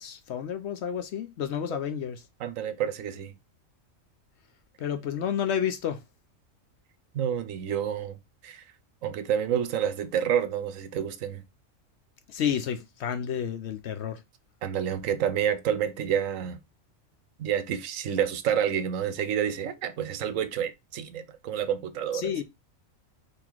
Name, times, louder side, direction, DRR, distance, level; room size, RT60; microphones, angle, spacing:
voice 1, 0.0-2.2 4.8-6.0 12.3-14.2 22.1-22.4, left 8 dB, 65° left, 0.8 m, -30 dB
voice 2, 2.4-3.3 7.1-8.2 8.4-8.6 9.0-11.4 14.6-16.6 17.4-22.3, right 9 dB, 80° right, 1.0 m, -29 dB
3.9 x 2.9 x 4.5 m
omnidirectional pair, 1.4 m